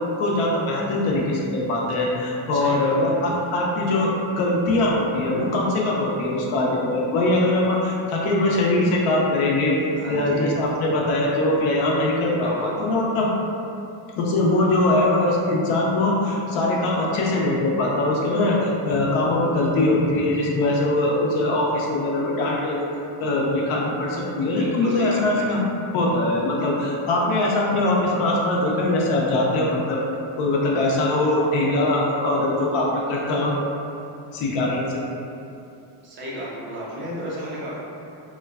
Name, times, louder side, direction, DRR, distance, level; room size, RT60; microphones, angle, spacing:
voice 1, 0.0-9.8 10.1-13.3 14.2-22.8 23.2-25.6 25.9-30.0 30.4-33.6 34.3-35.0, left 2 dB, 80° left, -3 dB, 0.7 m, -22 dB
voice 2, 2.5-3.4 9.9-10.5 12.4-12.8 24.6-25.5 36.0-37.8, equal, 25° right, -7 dB, 0.4 m, -34 dB
3.0 x 2.2 x 2.3 m, 2.7 s
cardioid pair, 170°, 49 cm